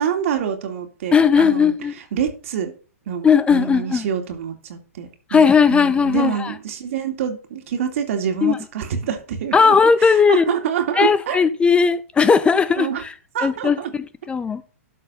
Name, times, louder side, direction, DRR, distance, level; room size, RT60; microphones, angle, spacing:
voice 1, 0.0-2.7 3.1-11.4 12.8-13.0 13.3-13.9, right 8 dB, 60° right, 2.4 m, -26 dB
voice 2, 1.1-1.9 3.2-4.0 5.3-6.5 8.4-8.6 9.5-10.4 11.0-13.1 13.4-14.6, left 6 dB, 15° left, 0.5 m, -17 dB
12.5 x 4.4 x 5.5 m
hypercardioid pair, 120°, 8 cm